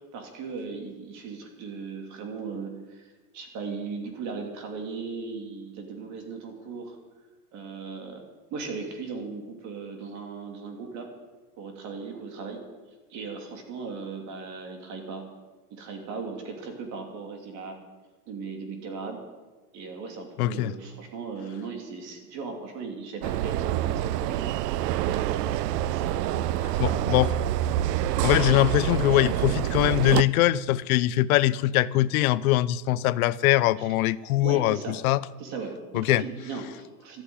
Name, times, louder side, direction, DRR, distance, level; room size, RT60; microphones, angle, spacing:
voice 1, 0.1-7.0 7.5-8.2 8.5-11.1 11.6-12.6 13.1-15.2 15.7-17.7 18.3-19.2 19.7-24.4 24.7-27.2 33.8-33.9 34.4-34.9 35.4-37.2, right 4 dB, 35° right, 3 dB, 3.0 m, -37 dB
voice 2, 20.4-20.7 26.8-27.3 28.2-35.2 35.9-36.2, left 15 dB, 65° left, 18 dB, 0.7 m, -22 dB
sound 1, 23.2-30.2, right 13 dB, 90° right, 0.6 m, -27 dB
13.0 x 9.2 x 9.7 m, 1.3 s
supercardioid pair, 160°, 47 cm